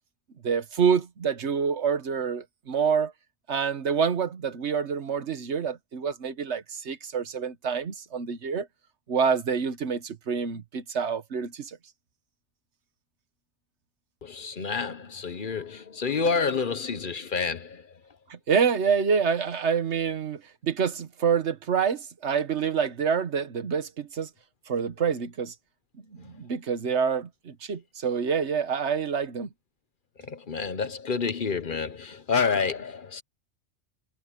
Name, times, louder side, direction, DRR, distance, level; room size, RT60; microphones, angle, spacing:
voice 1, 0.4-3.1 3.5-8.7 9.1-11.8 18.3-24.3 24.7-25.5 26.1-29.5, right 6 dB, 80° right, 1.4 m, -27 dB
voice 2, 14.2-17.9 30.2-33.2, left 5 dB, 50° left, 1.1 m, -29 dB
omnidirectional pair, 1.2 m